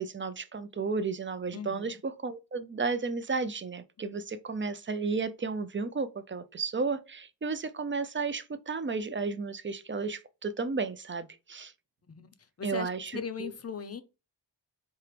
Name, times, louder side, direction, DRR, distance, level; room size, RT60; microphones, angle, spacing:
voice 1, 0.0-11.7 12.6-13.1 13.4-13.5, right 4 dB, 30° right, 0.4 m, -33 dB
voice 2, 1.5-2.0 12.1-12.3 12.6-14.0, left 6 dB, 35° left, 0.6 m, -38 dB
4.5 x 2.9 x 3.3 m
wide cardioid pair, 90°, 42 cm